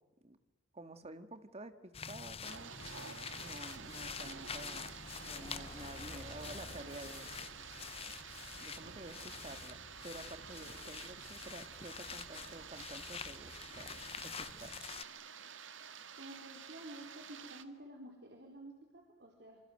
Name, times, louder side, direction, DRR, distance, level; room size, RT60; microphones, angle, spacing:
voice 1, 0.7-2.7 3.3-7.3 8.6-9.8 10.0-13.9 14.2-14.7, right 2 dB, 35° right, 10 dB, 2.0 m, -50 dB
sound 1, 1.9-15.0, left 6 dB, 30° left, 1.0 m, -47 dB
sound 2, 2.4-17.6, right 7 dB, 85° right, 2.0 m, -50 dB
voice 2, 16.1-19.6, right 1 dB, 60° right, 1 dB, 4.3 m, -51 dB
27.5 x 26.5 x 7.9 m, 1.1 s
head